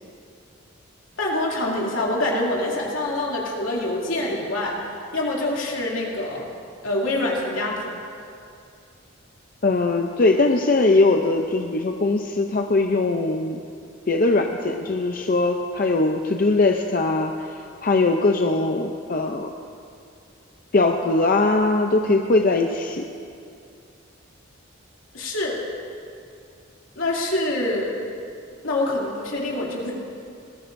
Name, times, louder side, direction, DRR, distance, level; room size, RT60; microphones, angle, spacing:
voice 1, 1.2-4.8 5.1-6.4 6.8-7.8 25.1-25.6 27.0-27.9 28.6-29.9, left 1 dB, 70° left, -4 dB, 2.7 m, -25 dB
voice 2, 9.6-13.6 14.1-17.5 17.8-19.5 20.7-23.0, left 2 dB, 40° left, 3 dB, 0.5 m, -20 dB
20.5 x 15.0 x 2.6 m, 2.5 s
head